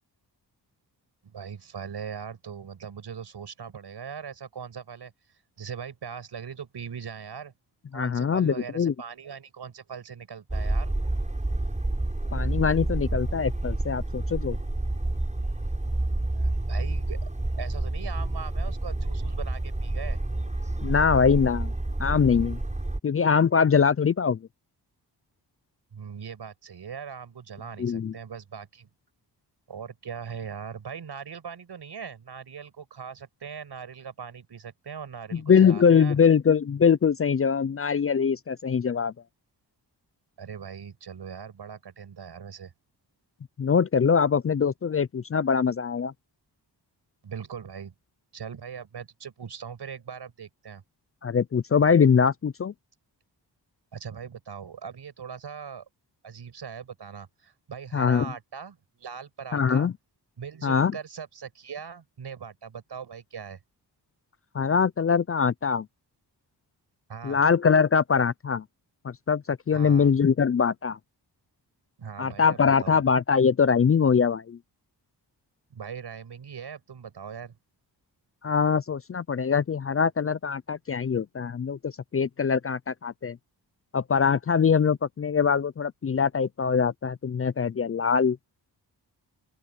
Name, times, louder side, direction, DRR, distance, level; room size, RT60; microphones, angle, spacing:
voice 1, 1.2-5.1 5.6-7.5 7.9-10.9 16.2-17.3 17.6-20.2 25.9-28.9 29.7-36.2 40.4-42.7 47.2-47.9 48.3-50.8 53.9-55.8 56.2-59.9 60.4-63.6 67.1-67.5 69.7-70.1 72.0-73.0 75.7-77.6, right 7 dB, 75° right, 6.1 m, -40 dB
voice 2, 7.9-8.9 12.3-14.6 20.8-21.7 22.0-22.6 23.0-24.4 27.8-28.1 35.3-39.1 43.6-46.1 51.2-52.7 57.9-58.3 59.5-59.9 60.6-60.9 64.5-65.9 67.2-68.6 69.0-71.0 72.2-74.6 78.4-83.4 83.9-88.4, left 6 dB, 35° left, 0.5 m, -23 dB
sound 1, 10.5-23.0, right 2 dB, 15° right, 7.7 m, -29 dB
open air
wide cardioid pair, 95°, 41 cm